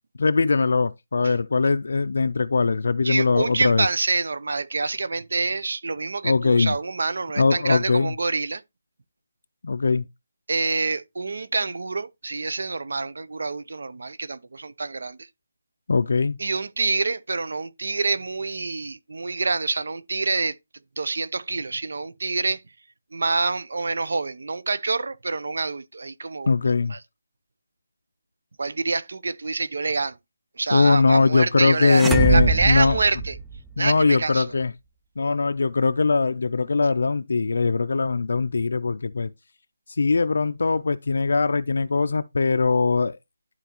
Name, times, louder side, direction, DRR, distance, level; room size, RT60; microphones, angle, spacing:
voice 1, 0.2-3.9 6.2-6.8 7.4-8.1 9.6-10.1 15.9-16.4 26.5-26.9 30.7-33.0 33.8-34.7 35.2-39.3 39.9-43.2, left 4 dB, 60° left, 0.4 m, -21 dB
voice 2, 3.0-8.6 10.5-15.3 16.4-20.6 21.0-22.6 23.1-27.0 28.6-30.2 30.6-33.4 33.8-34.4, right 3 dB, 65° right, 0.7 m, -26 dB
sound 1, 31.9-33.9, right 4 dB, 5° right, 0.3 m, -23 dB
11.5 x 4.1 x 2.9 m
hypercardioid pair, 175°, 0 cm